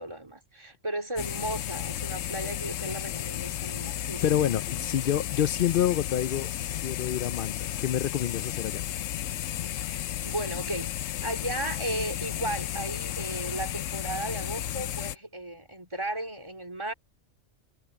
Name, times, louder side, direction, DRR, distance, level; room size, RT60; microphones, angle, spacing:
voice 1, 0.0-4.5 9.7-16.9, right 1 dB, 20° right, 2.9 m, -35 dB
sound 1, 1.2-15.2, left 12 dB, 90° left, 1.0 m, -33 dB
voice 2, 4.2-6.5 6.8-8.8, left 10 dB, 60° left, 0.6 m, -27 dB
omnidirectional pair, 1.3 m